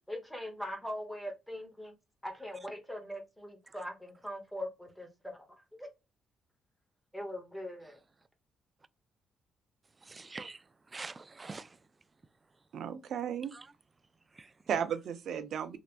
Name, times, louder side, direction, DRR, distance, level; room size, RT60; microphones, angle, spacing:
voice 1, 0.1-1.9 2.2-5.5 5.8-5.9 7.1-8.0, equal, 5° left, 1.0 m, -41 dB
voice 2, 10.0-11.8 13.5-13.7 14.3-14.5, right 3 dB, 25° right, 0.3 m, -45 dB
voice 3, 12.7-13.6 14.7-15.8, right 8 dB, 65° right, 0.6 m, -34 dB
3.2 x 2.9 x 2.5 m
cardioid pair, 90°, 0 cm